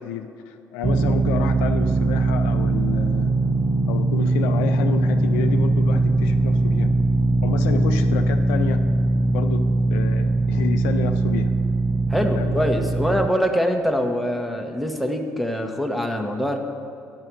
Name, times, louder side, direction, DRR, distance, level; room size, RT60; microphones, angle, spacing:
voice 1, 0.0-3.3 3.9-6.9 7.4-8.8 9.3-11.5 12.3-12.6, left 8 dB, 75° left, 7 dB, 0.4 m, -30 dB
sound 1, 0.8-13.3, right 2 dB, 15° right, 0.6 m, -21 dB
voice 2, 12.1-16.6, equal, ahead, 3 dB, 1.2 m, -24 dB
9.5 x 5.6 x 7.6 m, 2.6 s
hypercardioid pair, 50°, 8 cm